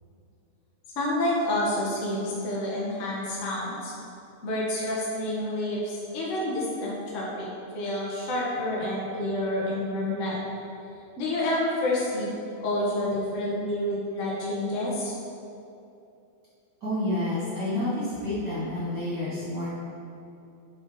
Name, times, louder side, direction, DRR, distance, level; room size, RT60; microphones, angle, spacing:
voice 1, 0.9-3.9 4.4-7.5 7.7-10.4 11.2-12.3 12.6-15.1, left 1 dB, 35° left, -6 dB, 1.3 m, -28 dB
voice 2, 16.8-19.7, left 1 dB, 40° right, -10 dB, 1.7 m, -29 dB
7.0 x 6.5 x 4.9 m, 2.7 s
omnidirectional pair, 3.8 m